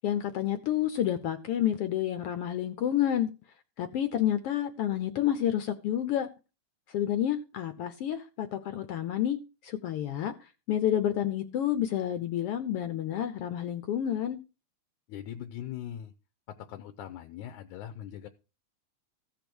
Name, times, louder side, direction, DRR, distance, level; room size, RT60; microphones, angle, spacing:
voice 1, 0.0-3.3 3.8-6.3 6.9-10.3 10.7-14.4, left 11 dB, 70° left, 1.4 m, -29 dB
voice 2, 15.1-16.1 16.5-18.3, left 11 dB, 90° left, 2.3 m, -41 dB
15.0 x 5.2 x 6.1 m
omnidirectional pair, 3.4 m